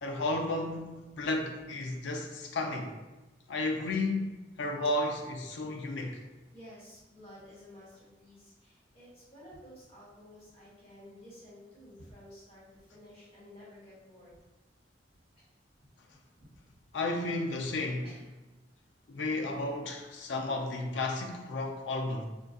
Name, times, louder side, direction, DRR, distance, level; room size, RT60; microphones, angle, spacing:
voice 1, 0.0-3.0 3.5-4.3 4.6-6.2 16.9-18.1 19.1-22.3, left 2 dB, 85° left, 0.5 m, -33 dB
voice 2, 6.5-14.4 15.4-15.5 18.0-18.3, left 1 dB, 35° left, 1.3 m, -53 dB
3.8 x 2.3 x 2.5 m
head